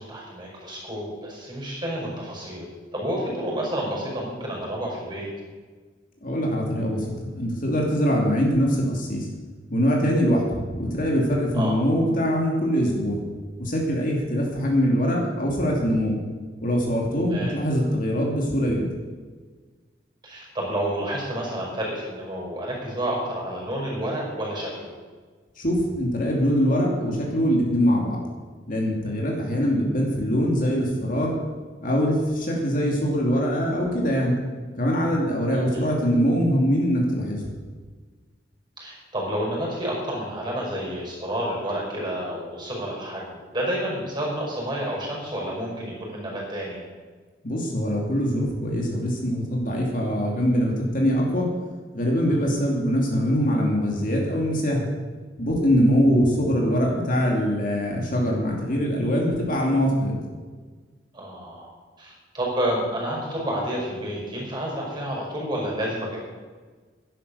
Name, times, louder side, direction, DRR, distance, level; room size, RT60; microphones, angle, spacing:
voice 1, 0.0-2.7 2.9-5.3 11.5-11.8 17.3-17.5 20.2-24.9 35.5-35.8 38.8-46.8 52.3-52.5 61.1-61.7 62.0-66.2, right 1 dB, 25° right, -3 dB, 5.7 m, -30 dB
voice 2, 6.2-7.0 7.3-9.3 9.7-13.2 13.6-16.2 16.6-18.9 25.6-28.2 28.7-31.4 31.8-34.3 34.8-37.4 47.4-51.5 51.9-54.9 55.4-60.2, equal, 50° left, -1 dB, 2.8 m, -23 dB
12.5 x 10.5 x 6.9 m, 1.4 s
head